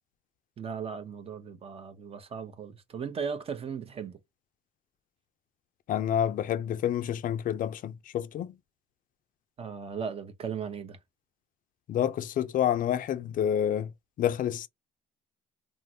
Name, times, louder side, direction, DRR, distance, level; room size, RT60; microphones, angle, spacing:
voice 1, 0.6-4.2 9.6-11.0, right 6 dB, 35° right, 0.7 m, -37 dB
voice 2, 5.9-8.5 11.9-13.9 14.2-14.7, left 10 dB, 55° left, 0.4 m, -28 dB
3.6 x 2.0 x 2.7 m
cardioid pair, 110°, 17 cm